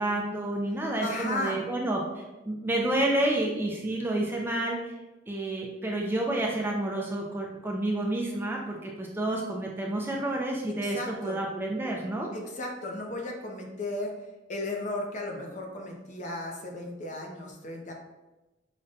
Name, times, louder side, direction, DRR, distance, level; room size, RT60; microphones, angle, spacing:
voice 1, 0.0-4.9 5.3-12.3, right 1 dB, 10° right, -1 dB, 0.3 m, -29 dB
voice 2, 1.0-1.6 10.8-11.4 12.3-14.1 14.5-17.9, left 2 dB, 40° left, 1 dB, 0.5 m, -35 dB
4.9 x 2.1 x 2.6 m, 1.1 s
head